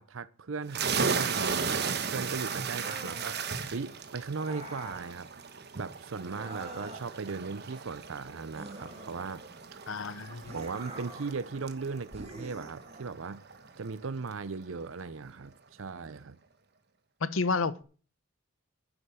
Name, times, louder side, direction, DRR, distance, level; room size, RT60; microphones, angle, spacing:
voice 1, 0.0-3.4 3.7-5.3 5.8-9.4 10.5-13.4 13.8-16.4, right 4 dB, 75° right, 0.6 m, -38 dB
sound 1, 0.7-14.1, right 5 dB, 55° right, 1.3 m, -36 dB
sound 2, 2.7-3.6 4.3-5.1 6.2-7.3 8.5-9.7 10.4-11.4 12.1-13.1, right 2 dB, 30° right, 2.5 m, -45 dB
voice 2, 9.9-10.5 17.2-17.8, left 4 dB, 75° left, 0.9 m, -31 dB
9.9 x 7.9 x 7.0 m
head